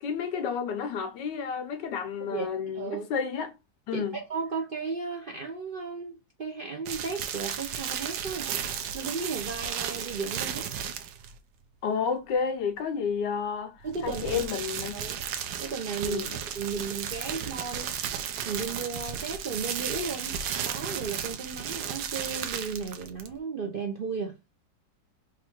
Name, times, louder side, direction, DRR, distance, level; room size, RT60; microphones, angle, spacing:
voice 1, 0.0-3.5 3.9-4.2 11.8-14.9 16.0-16.4, left 6 dB, 80° left, 1.5 m, -31 dB
voice 2, 2.7-3.1 3.9-8.5 8.9-10.7 13.8-14.5 14.9-15.2 15.6-16.2 16.5-17.9 18.4-20.3 20.6-24.4, right 4 dB, 55° right, 0.6 m, -34 dB
sound 1, 6.9-11.4 13.8-23.4, right 8 dB, 85° right, 1.3 m, -34 dB
4.1 x 2.5 x 4.3 m
omnidirectional pair, 1.9 m